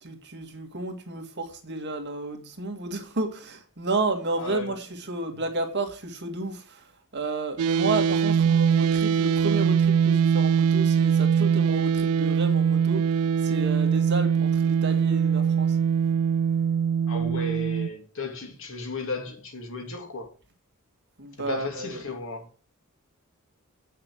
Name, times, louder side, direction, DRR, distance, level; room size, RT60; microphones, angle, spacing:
voice 1, 0.0-6.9 7.1-13.1 13.4-15.8 21.2-22.0, right 2 dB, 50° right, 2.0 m, -32 dB
voice 2, 4.4-4.8 17.1-20.3 21.5-22.5, left 2 dB, 65° left, 2.6 m, -34 dB
sound 1, 7.6-17.9, right 7 dB, 75° right, 0.4 m, -22 dB
8.3 x 6.6 x 7.5 m
head